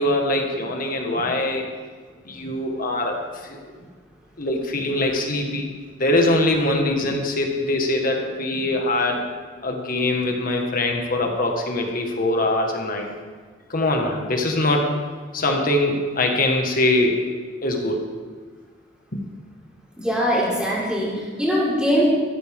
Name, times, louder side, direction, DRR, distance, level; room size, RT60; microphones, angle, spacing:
voice 1, 0.0-1.7 2.2-3.6 4.4-5.7 6.0-9.3 9.6-13.1 13.7-15.0 15.3-17.2 17.6-18.0 19.1-19.2, left 1 dB, 50° left, 2 dB, 1.8 m, -22 dB
voice 2, 20.0-22.1, equal, 5° right, -7 dB, 4.4 m, -22 dB
14.5 x 13.5 x 3.7 m, 1.5 s
head